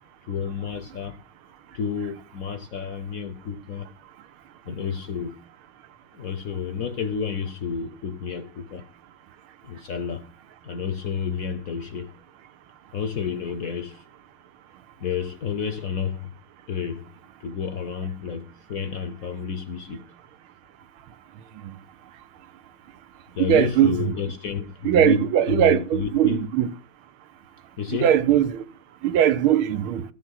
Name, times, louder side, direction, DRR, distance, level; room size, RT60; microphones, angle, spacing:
voice 1, 0.3-1.2 1.7-3.9 4.7-5.4 6.1-8.9 9.6-10.3 10.6-12.2 12.9-14.0 15.0-16.3 16.7-17.1 17.4-20.0 23.4-26.5 27.8-28.2, left 6 dB, 60° left, 1.0 m, -30 dB
voice 2, 23.5-24.1 24.8-26.7 27.9-28.6 29.0-30.0, right 10 dB, 90° right, 1.6 m, -20 dB
14.5 x 7.4 x 5.7 m
omnidirectional pair, 2.3 m